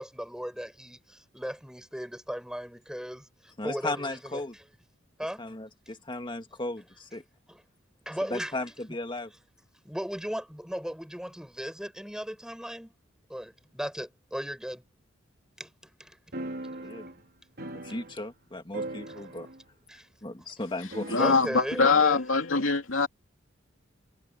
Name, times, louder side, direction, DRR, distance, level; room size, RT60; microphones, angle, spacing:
voice 1, 0.0-4.6 5.2-5.4 6.5-6.6 7.5-7.6 8.1-8.7 9.8-12.9 13.3-14.8 15.6-16.2 19.1-19.3 19.9-20.1 21.2-22.2, equal, 5° right, 7.4 m, -37 dB
voice 2, 3.6-4.5 5.4-7.2 8.3-9.3 16.8-17.1 17.8-19.5 20.2-21.2, left 2 dB, 25° left, 2.0 m, -36 dB
sound 1, 16.3-18.5 18.7-19.7 20.0-20.1 20.9-21.7, right 1 dB, 55° right, 3.4 m, -40 dB
voice 3, 21.1-23.1, left 4 dB, 90° left, 2.5 m, -23 dB
head